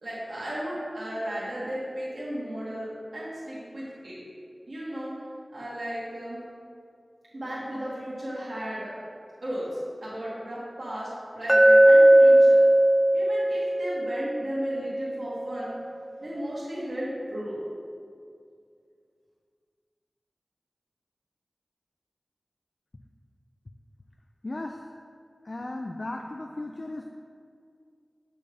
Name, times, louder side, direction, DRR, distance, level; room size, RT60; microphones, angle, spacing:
voice 1, 0.0-4.2 4.7-5.1 5.5-6.4 7.3-8.9 9.4-12.6 13.1-15.7 16.2-17.6, equal, 70° right, -9 dB, 1.3 m, -35 dB
Glass, 11.5-15.6, right 1 dB, 15° right, 0.4 m, -18 dB
voice 2, 24.4-24.8 25.4-27.2, left 2 dB, 55° left, 3 dB, 0.3 m, -36 dB
6.4 x 5.4 x 3.3 m, 2.3 s
cardioid pair, 40°, 0 cm